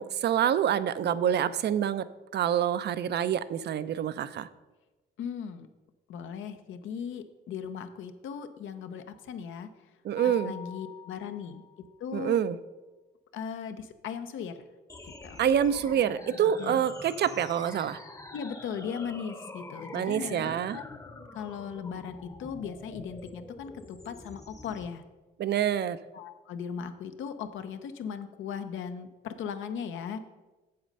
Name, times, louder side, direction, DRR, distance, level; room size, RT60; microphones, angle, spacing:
voice 1, 0.0-2.0 2.3-4.5 10.0-10.5 12.1-12.6 15.4-18.0 19.9-20.8 25.4-26.0, right 9 dB, 60° right, 15 dB, 0.5 m, -27 dB
voice 2, 5.2-5.7 6.1-9.7 10.2-11.6 12.0-12.4 13.3-14.6 15.0-15.4 16.6-16.8 18.3-21.0 21.3-25.0 26.1-30.2, left 7 dB, 80° left, 9 dB, 0.8 m, -38 dB
Mallet percussion, 10.2-12.0, left 8 dB, 50° left, 1.2 m, -45 dB
sound 1, 14.9-24.9, left 2 dB, 15° left, 0.8 m, -45 dB
7.8 x 7.5 x 5.4 m, 1.1 s
cardioid pair, 90°, 20 cm